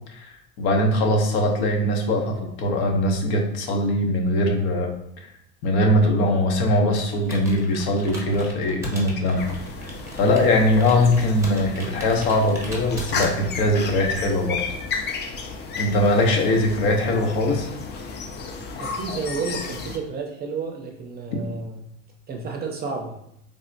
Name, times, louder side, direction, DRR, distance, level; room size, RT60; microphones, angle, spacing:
voice 1, 0.6-4.9 5.6-9.4 10.1-14.6 15.8-17.7, left 1 dB, 70° left, 2 dB, 0.8 m, -21 dB
Computer keyboard, 6.9-13.8, right 1 dB, 10° right, 0.9 m, -38 dB
sound 1, 9.4-20.0, left 4 dB, 30° left, 0.5 m, -33 dB
voice 2, 18.8-21.9 22.3-23.1, right 4 dB, 30° right, 2 dB, 0.5 m, -31 dB
3.4 x 2.0 x 2.6 m, 0.76 s
hypercardioid pair, 90°, 33 cm